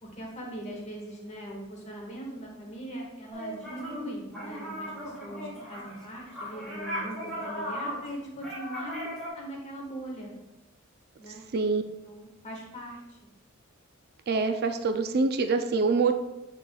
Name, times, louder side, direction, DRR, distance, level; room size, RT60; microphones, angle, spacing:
voice 1, 0.0-9.1 9.3-10.3 11.2-11.4 12.0-13.2, right 1 dB, 30° left, -2 dB, 1.7 m, -40 dB
sound 1, 3.3-4.1 4.3-9.3, equal, 5° left, 2.4 m, -37 dB
voice 2, 14.3-16.1, right 4 dB, 50° right, 7 dB, 0.4 m, -25 dB
7.3 x 6.6 x 2.3 m, 0.96 s
head